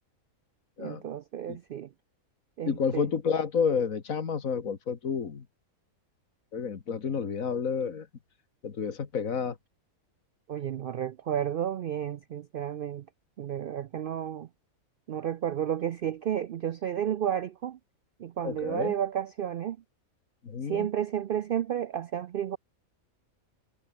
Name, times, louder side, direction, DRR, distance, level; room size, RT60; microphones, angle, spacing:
voice 1, 0.8-1.9 2.6-3.1 10.5-13.1 13.4-14.5 15.1-17.8 18.2-19.8 20.6-22.6, right 9 dB, 70° right, 0.5 m, -32 dB
voice 2, 2.6-5.4 6.5-8.1 8.6-9.6 18.4-18.9 20.4-20.9, left 6 dB, 75° left, 2.1 m, -30 dB
omnidirectional pair, 1.4 m